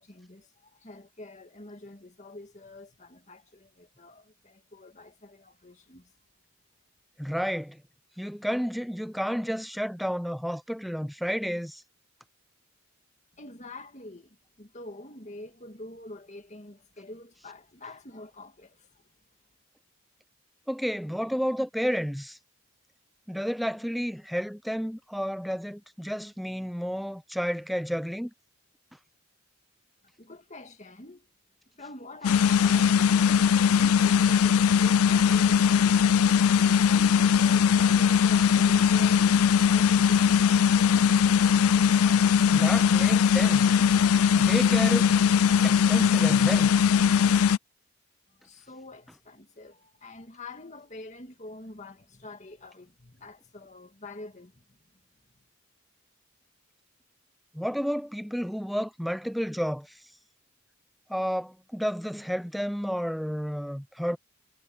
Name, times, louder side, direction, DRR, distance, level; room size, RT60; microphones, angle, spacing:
voice 1, 0.0-6.1 13.3-18.9 30.2-31.3 31.8-36.3 36.9-41.2 48.3-54.8, left 2 dB, 35° left, 2.1 m, -46 dB
voice 2, 7.2-7.8 8.2-11.8 20.7-22.4 23.3-28.3 42.5-43.8 44.3-45.2 45.6-46.7 57.5-59.9 61.1-64.2, equal, ahead, 0.8 m, -31 dB
sound 1, 32.2-47.6, left 7 dB, 90° left, 0.5 m, -20 dB
head